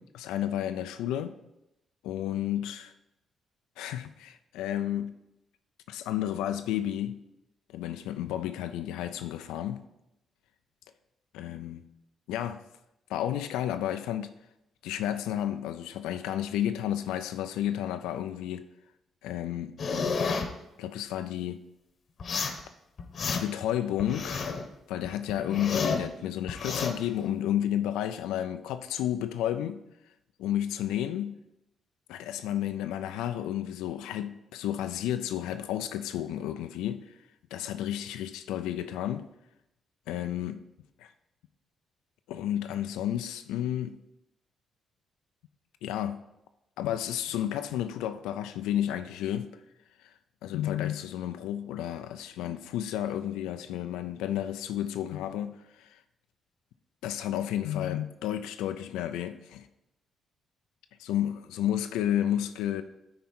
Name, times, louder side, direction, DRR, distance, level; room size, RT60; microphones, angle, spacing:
voice 1, 0.0-1.4 2.0-2.9 3.8-5.1 5.9-7.2 7.7-9.8 11.3-11.8 12.3-12.6 13.1-14.3 14.8-18.7 19.2-19.7 20.8-21.6 23.3-24.4 24.9-29.8 30.4-31.4 32.1-37.1 37.5-39.3 40.1-40.6 41.0-41.1 42.3-44.0 45.8-46.2 46.8-49.6 50.0-50.1 50.4-56.0 57.0-59.7 61.1-62.8, left 11 dB, 90° left, 0.4 m, -31 dB
sound 1, 19.8-20.5 22.2-22.6 23.0-23.6 24.0-24.6 25.0-26.1 26.5-26.9, left 5 dB, 55° left, 0.9 m, -30 dB
9.2 x 4.3 x 4.4 m
supercardioid pair, 65°, 0 cm